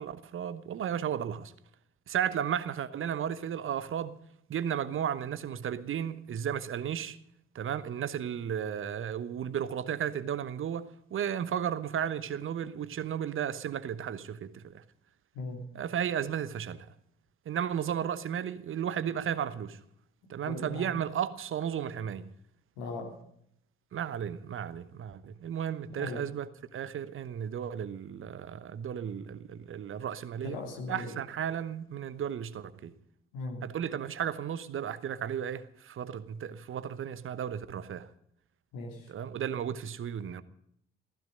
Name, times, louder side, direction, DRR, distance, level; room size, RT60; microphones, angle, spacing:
voice 1, 0.0-1.5 2.1-4.1 4.5-7.2 7.5-14.8 15.7-16.9 17.5-19.8 20.3-22.3 23.9-30.6 30.9-32.9 33.6-38.1 39.1-40.4, right 9 dB, 45° right, 1.0 m, -34 dB
voice 2, 15.3-15.6 20.5-20.9 22.8-23.1 26.0-26.2 30.4-31.2 33.3-33.6 38.7-39.1, left 3 dB, 70° left, 2.9 m, -38 dB
15.5 x 15.0 x 5.2 m
figure-of-eight pair, 40°, 30 cm